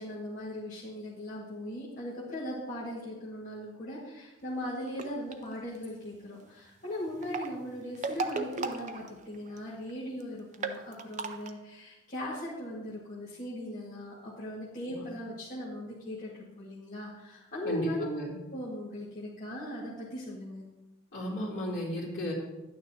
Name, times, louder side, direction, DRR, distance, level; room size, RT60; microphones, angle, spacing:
voice 1, 0.0-18.0 18.5-20.6, left 1 dB, 40° left, -8 dB, 1.6 m, -39 dB
sound 1, 4.9-5.3 7.1-9.6 9.9-10.0 10.2-10.3 10.5-11.5, right 3 dB, 35° right, 0.5 m, -35 dB
voice 2, 17.6-18.4 21.1-22.3, equal, 65° left, -5 dB, 2.8 m, -34 dB
11.0 x 9.1 x 2.8 m, 1.0 s
head